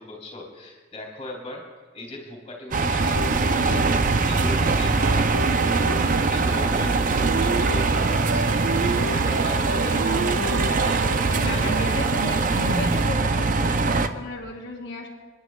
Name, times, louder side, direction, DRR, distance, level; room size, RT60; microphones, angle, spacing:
voice 1, 0.0-1.7 1.9-5.5 6.0-8.6 9.1-10.0 10.7-12.1, left 1 dB, 30° left, 0 dB, 3.3 m, -38 dB
sound 1, 2.7-14.1, right 3 dB, 40° right, 0.5 m, -22 dB
sound 2, 3.0-13.0, right 2 dB, 85° right, 0.8 m, -30 dB
voice 2, 9.9-10.7 11.4-15.1, left 2 dB, 60° left, -4 dB, 1.3 m, -34 dB
29.5 x 10.5 x 2.3 m, 1.4 s
head